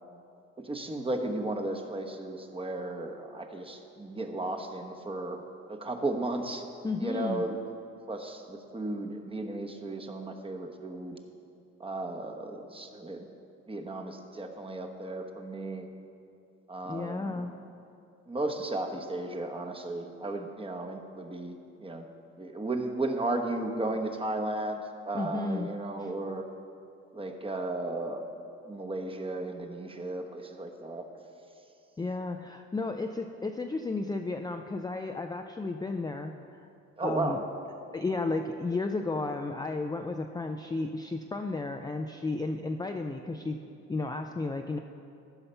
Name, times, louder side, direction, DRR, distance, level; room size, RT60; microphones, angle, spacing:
voice 1, 0.6-6.6 7.0-7.6 8.1-11.2 11.8-13.3 13.7-15.9 16.7-17.4 18.3-21.5 21.8-22.1 22.4-26.4 27.1-28.2 28.7-31.1 37.0-37.4, right 2 dB, 20° right, 4 dB, 1.0 m, -34 dB
voice 2, 6.8-7.4 16.9-17.5 25.1-25.7 26.0-26.1 32.0-36.7 37.0-37.4 37.9-43.6 43.9-44.8, left 3 dB, 15° left, 4 dB, 0.4 m, -33 dB
14.5 x 5.7 x 5.5 m, 2.6 s
cardioid pair, 90°, 30 cm